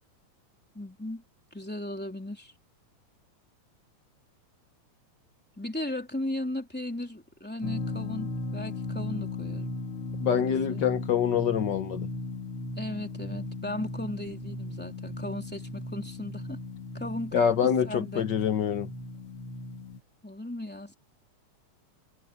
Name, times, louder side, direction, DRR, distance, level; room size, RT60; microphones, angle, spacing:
voice 1, 0.7-1.2 1.5-2.5 5.6-9.7 10.4-10.9 12.7-16.6 16.9-17.5 17.8-18.2 20.2-20.9, left 1 dB, 5° left, 3.1 m, -36 dB
sound 1, 7.6-20.0, left 2 dB, 50° left, 2.9 m, -37 dB
voice 2, 10.2-12.1 17.3-18.9, left 8 dB, 85° left, 0.9 m, -26 dB
omnidirectional pair, 3.4 m